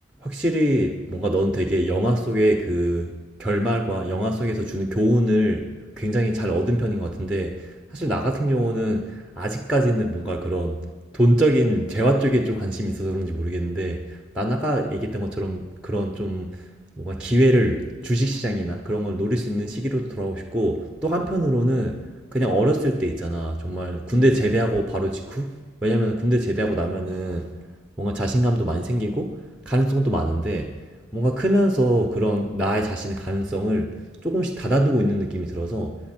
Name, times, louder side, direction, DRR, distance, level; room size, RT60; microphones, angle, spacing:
voice 1, 0.2-3.1 3.4-5.7 6.0-10.8 11.1-16.6 17.0-22.0 22.3-27.5 28.0-29.4 29.7-30.7 31.1-33.9 34.2-36.0, right 1 dB, 5° right, 3 dB, 0.8 m, -23 dB
23.5 x 10.5 x 4.4 m, 1.4 s
head